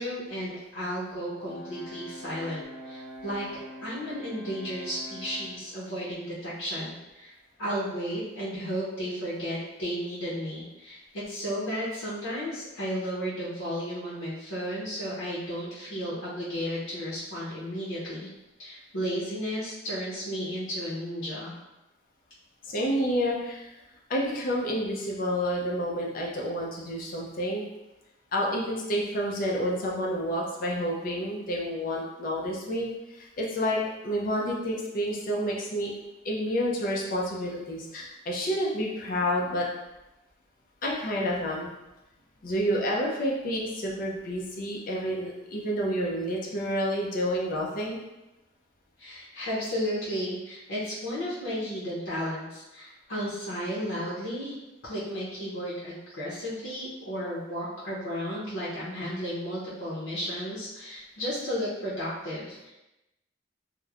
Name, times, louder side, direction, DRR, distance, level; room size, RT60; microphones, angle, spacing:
voice 1, 0.0-3.5 3.8-7.3 7.6-18.3 18.6-21.6 49.0-54.6 54.8-62.7, equal, 85° left, -8 dB, 0.7 m, -33 dB
Brass instrument, 1.4-5.6, equal, 15° right, 0.6 m, -44 dB
voice 2, 22.6-23.7 24.1-27.7 28.3-35.9 36.2-39.7 40.8-41.7 42.4-48.0, equal, 45° left, -2 dB, 0.5 m, -29 dB
3.0 x 2.0 x 2.3 m, 0.98 s
head